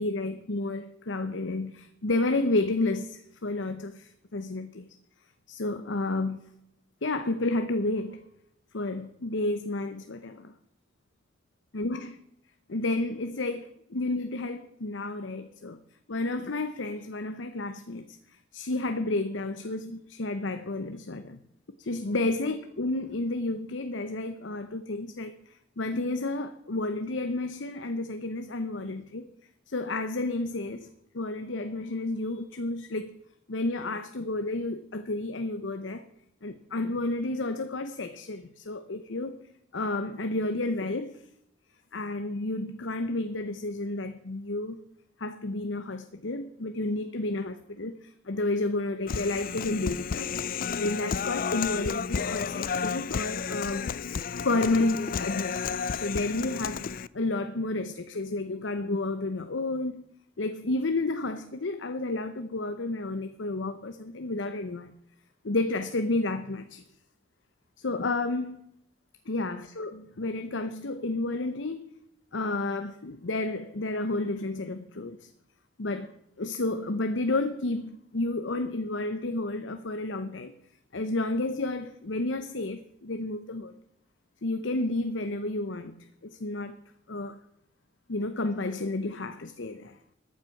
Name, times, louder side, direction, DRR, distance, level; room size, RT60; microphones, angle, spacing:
voice 1, 0.0-4.8 5.5-6.4 7.0-8.2 8.7-10.5 11.7-12.2 12.7-15.8 16.1-18.2 18.5-21.4 21.8-25.4 25.8-29.2 29.7-30.9 31.1-33.2 33.5-36.0 36.4-39.4 39.7-41.2 41.9-44.8 45.2-50.3 50.8-56.9 57.1-60.0 60.4-64.9 65.4-66.8 67.8-68.6 69.3-71.9 72.3-75.3 75.8-76.1 76.4-80.5 80.9-83.7 84.4-86.0 86.2-86.7 87.1-87.4 88.1-90.0, left 2 dB, 80° left, 0.9 m, -31 dB
Human voice, 49.1-57.1, left 6 dB, 50° left, 0.4 m, -32 dB
14.0 x 9.5 x 5.9 m
head